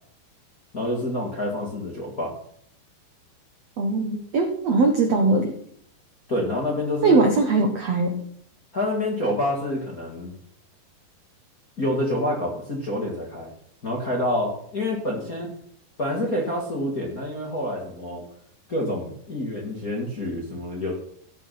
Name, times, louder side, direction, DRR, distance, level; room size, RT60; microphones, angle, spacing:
voice 1, 0.7-2.3 6.3-7.2 8.7-10.3 11.8-13.5 13.8-15.5 16.0-18.3 18.7-20.9, left 1 dB, 30° left, -1 dB, 1.8 m, -27 dB
voice 2, 3.8-5.5 7.0-8.2, right 3 dB, 75° right, 3 dB, 1.5 m, -20 dB
15.0 x 8.1 x 5.9 m, 0.65 s
omnidirectional pair, 5.4 m